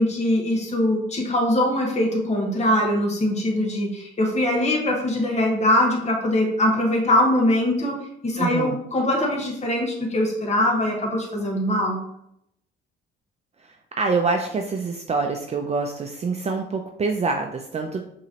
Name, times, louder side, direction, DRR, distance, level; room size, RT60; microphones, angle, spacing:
voice 1, 0.0-12.0, left 1 dB, 35° left, 0 dB, 1.3 m, -22 dB
voice 2, 8.4-8.8 13.6-18.0, right 4 dB, 35° right, 3 dB, 0.5 m, -26 dB
5.5 x 3.1 x 2.9 m, 0.74 s
cardioid pair, 90°, 20 cm